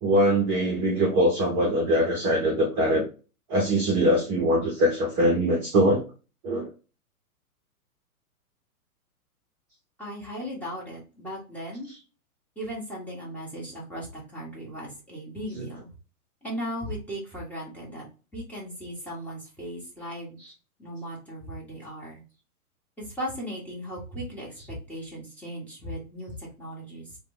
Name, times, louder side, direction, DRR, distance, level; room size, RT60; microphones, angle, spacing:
voice 1, 0.0-3.0 3.5-6.0 6.4-6.7, equal, 25° right, -1 dB, 0.7 m, -22 dB
voice 2, 10.0-11.9 12.5-15.9 16.4-18.1 18.3-20.4 20.8-22.2 23.0-27.2, equal, 5° left, -6 dB, 1.2 m, -37 dB
3.4 x 2.2 x 3.2 m, 0.33 s
figure-of-eight pair, 115°, 44 cm